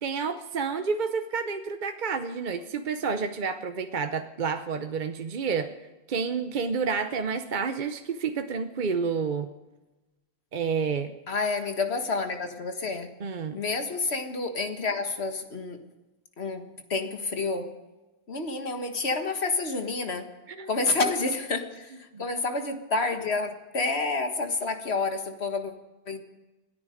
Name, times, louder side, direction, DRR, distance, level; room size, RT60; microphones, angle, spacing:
voice 1, 0.0-5.7 6.1-9.5 10.5-11.1 13.2-13.6 20.5-20.7 21.0-21.1 22.1-22.2, right 5 dB, 50° right, 8 dB, 0.9 m, -29 dB
voice 2, 11.3-13.1 13.5-15.9 16.4-17.8 18.3-20.3 20.7-25.7 26.1-26.2, left 3 dB, 75° left, 6 dB, 1.9 m, -29 dB
27.0 x 9.8 x 5.1 m, 1.1 s
omnidirectional pair, 1.1 m